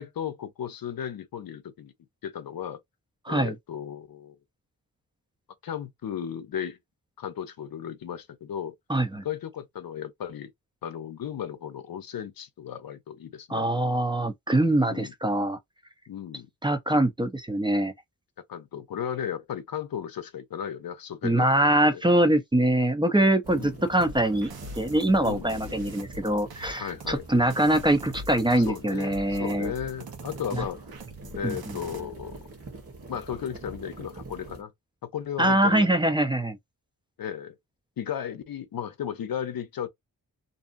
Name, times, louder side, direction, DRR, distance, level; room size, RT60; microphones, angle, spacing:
voice 1, 0.0-1.9 2.2-2.8 3.3-4.4 5.6-6.8 7.2-8.7 9.2-10.5 10.8-13.7 14.9-15.1 16.1-16.5 18.5-22.0 23.5-23.8 25.2-25.8 26.8-27.3 28.6-30.8 31.3-32.4 33.1-34.7 35.0-35.9 37.2-37.6 38.0-39.9, left 9 dB, 75° left, 0.7 m, -35 dB
voice 2, 8.9-9.2 13.5-15.6 16.6-17.9 21.2-24.5 24.8-29.7 31.4-31.8 35.4-36.6, right 1 dB, 15° right, 0.6 m, -23 dB
sound 1, 23.4-34.6, right 3 dB, 40° right, 1.2 m, -44 dB
sound 2, 24.0-32.0, right 1 dB, 80° right, 0.9 m, -43 dB
2.6 x 2.4 x 2.5 m
wide cardioid pair, 100°, 36 cm